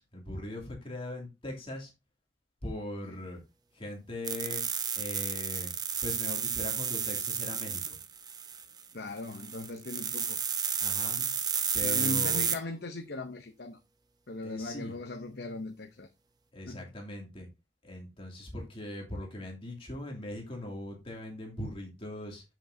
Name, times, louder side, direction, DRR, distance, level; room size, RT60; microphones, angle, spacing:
voice 1, 0.0-1.9 2.6-3.4 3.7-4.6 5.0-5.7 6.0-8.0 10.8-11.2 11.7-12.5 14.4-14.9 16.5-17.5 17.8-22.4, left 1 dB, 30° left, 2.5 m, -40 dB
sound 1, 4.2-8.8 9.2-12.6, right 7 dB, 20° right, 0.6 m, -32 dB
voice 2, 8.9-10.4 11.2-11.3 11.8-13.8 14.3-16.1 16.7-16.9, left 2 dB, 60° left, 0.7 m, -38 dB
7.6 x 7.2 x 2.7 m
head